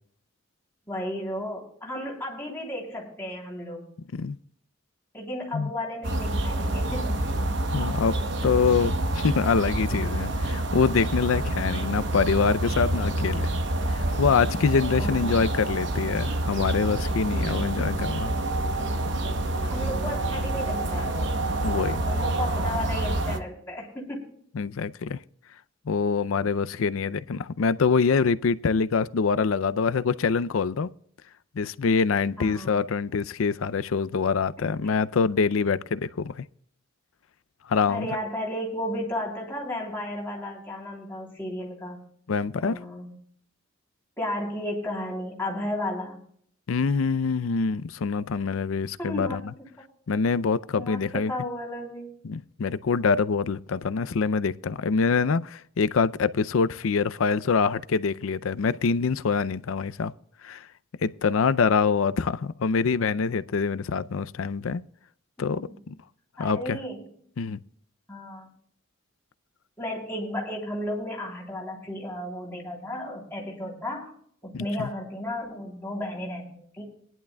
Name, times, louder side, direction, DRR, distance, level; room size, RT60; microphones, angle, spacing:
voice 1, 0.9-3.8 5.1-7.3 14.9-15.5 19.6-21.4 22.0-24.4 32.4-32.8 34.6-34.7 37.9-42.0 42.6-43.1 44.2-46.2 49.0-49.7 50.7-52.1 65.4-65.8 66.4-67.1 68.1-68.5 69.8-74.1 74.4-76.9, left 1 dB, 10° left, 3.3 m, -34 dB
sound 1, 6.0-23.4, right 1 dB, 60° right, 1.0 m, -27 dB
voice 2, 7.7-8.2 8.4-13.5 13.9-18.4 21.6-22.0 24.5-25.2 25.9-30.9 31.6-36.4 37.7-38.1 42.3-42.8 46.7-49.4 50.1-51.3 52.2-60.1 60.4-60.7 61.0-64.8 65.4-65.7 66.4-66.8 67.4-67.6 74.5-74.9, left 5 dB, 85° left, 0.5 m, -25 dB
20.0 x 11.0 x 2.3 m
head